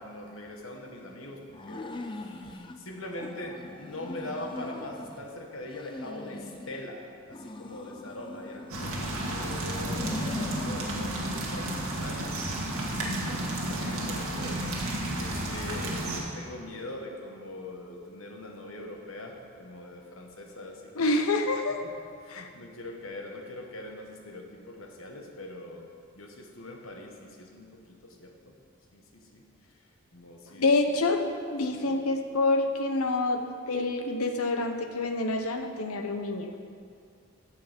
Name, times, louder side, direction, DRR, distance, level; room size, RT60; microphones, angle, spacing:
voice 1, 0.0-12.4 12.8-14.6 15.2-21.1 21.8-25.9 26.1-28.5 28.9-29.4 30.1-30.9 31.7-32.0, left 1 dB, 65° left, 2 dB, 1.4 m, -42 dB
sound 1, 1.5-2.8 3.2-5.2 5.6-6.9 7.3-9.2 9.7-10.9, left 2 dB, 20° left, 0.5 m, -40 dB
sound 2, 8.7-16.2, right 1 dB, 80° right, 1.9 m, -32 dB
voice 2, 21.0-21.8 22.3-22.5 30.6-33.4 33.7-36.5, left 2 dB, 85° left, 6 dB, 0.9 m, -27 dB
15.0 x 6.9 x 5.2 m, 2.3 s
head